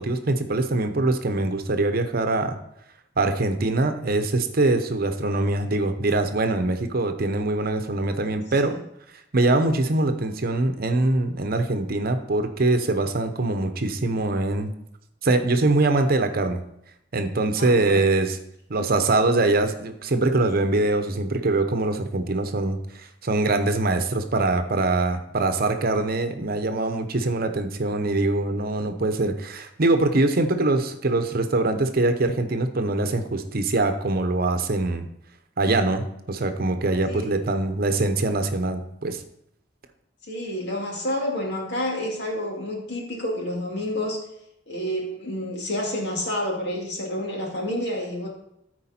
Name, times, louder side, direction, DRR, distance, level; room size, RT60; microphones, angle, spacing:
voice 1, 0.0-2.6 3.2-8.8 9.3-14.7 15.2-16.6 17.1-18.4 18.7-22.8 23.2-35.1 35.6-39.2, right 2 dB, 55° right, 8 dB, 0.8 m, -23 dB
voice 2, 17.6-18.0 18.8-18.9 37.0-37.4 40.3-44.2 44.7-48.3, left 1 dB, 65° left, -1 dB, 2.4 m, -29 dB
13.5 x 4.6 x 4.3 m, 0.78 s
head